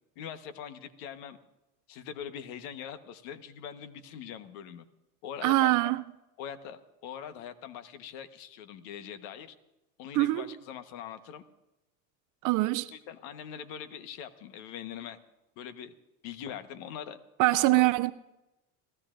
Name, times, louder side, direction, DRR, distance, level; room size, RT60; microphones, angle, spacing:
voice 1, 0.2-1.4 1.9-4.9 5.2-5.9 6.4-9.5 10.0-11.4 12.9-15.2 15.6-15.9 16.2-17.2 17.5-17.9, left 8 dB, 65° left, 1.4 m, -42 dB
voice 2, 5.4-6.0 10.1-10.5 12.4-12.9 17.4-18.1, right 20 dB, 45° right, 0.5 m, -24 dB
30.0 x 14.5 x 2.6 m
hypercardioid pair, 100°, 46 cm